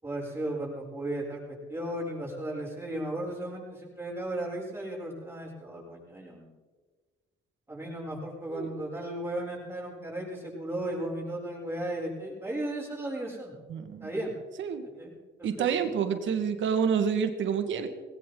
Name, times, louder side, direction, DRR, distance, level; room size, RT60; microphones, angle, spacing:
voice 1, 0.0-1.4 1.7-6.5 7.7-13.5 14.0-14.3 15.0-15.1 15.4-15.7, right 1 dB, 10° right, -4 dB, 6.9 m, -35 dB
voice 2, 8.5-8.9 13.7-14.1 14.6-14.8 15.4-17.9, right 7 dB, 75° right, 8 dB, 1.8 m, -28 dB
19.5 x 17.0 x 3.9 m, 1.3 s
cardioid pair, 90°, 20 cm